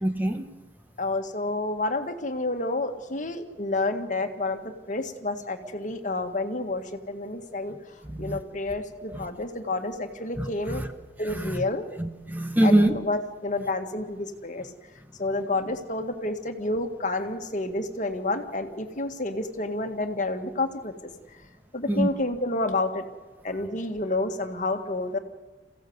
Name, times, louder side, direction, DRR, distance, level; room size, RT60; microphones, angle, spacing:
voice 1, 0.0-0.5 8.1-8.4 9.1-9.2 10.4-10.5 10.8-10.9 11.3-11.6 12.0-13.0 21.9-22.1, right 1 dB, 10° right, 1.0 m, -24 dB
voice 2, 1.0-7.8 8.2-10.8 11.2-11.9 12.6-14.7 15.2-21.1 21.7-23.0 23.4-25.2, left 2 dB, 45° left, 1.8 m, -29 dB
27.5 x 16.0 x 8.0 m
head